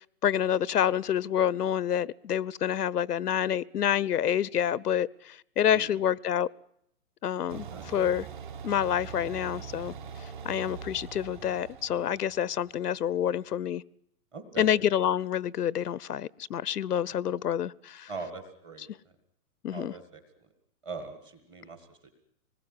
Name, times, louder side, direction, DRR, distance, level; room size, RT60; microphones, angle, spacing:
voice 1, 0.2-6.5 7.2-8.3 8.6-9.9 10.4-13.8 14.6-18.1 19.6-19.9, left 10 dB, 85° left, 0.9 m, -28 dB
voice 2, 7.5-7.8 14.3-14.7 18.1-18.9 19.7-20.2 20.8-22.1, right 4 dB, 10° right, 1.6 m, -41 dB
sound 1, 7.5-13.2, right 7 dB, 30° right, 2.2 m, -43 dB
25.5 x 20.0 x 9.7 m
hypercardioid pair, 180°, 46 cm